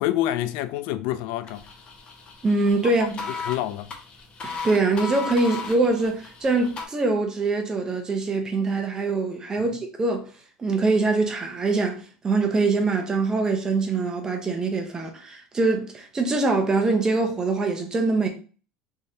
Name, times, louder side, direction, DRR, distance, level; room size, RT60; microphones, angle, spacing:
voice 1, 0.0-1.6 2.8-2.9 3.4-3.9 9.6-9.7, left 13 dB, 70° left, 0.3 m, -27 dB
sound 1, 1.4-6.8, left 4 dB, 30° left, 0.7 m, -36 dB
voice 2, 2.4-3.3 4.4-10.3 10.6-18.3, right 3 dB, 20° right, 0.8 m, -23 dB
3.7 x 3.2 x 2.7 m
cardioid pair, 135°, 3 cm